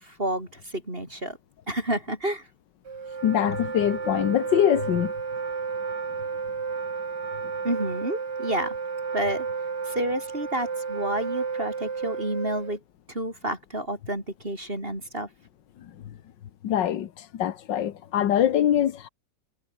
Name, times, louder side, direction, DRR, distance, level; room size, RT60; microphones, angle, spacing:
voice 1, 0.0-1.4 1.7-2.4 7.6-8.7 9.1-9.5 9.9-12.8 13.1-15.3, right 1 dB, 30° right, 7.0 m, -30 dB
Wind instrument woodwind instrument, 2.9-12.8, right 5 dB, 60° right, 3.2 m, -32 dB
voice 2, 3.2-5.1 16.6-19.1, left 10 dB, 75° left, 1.8 m, -23 dB
omnidirectional pair, 2.0 m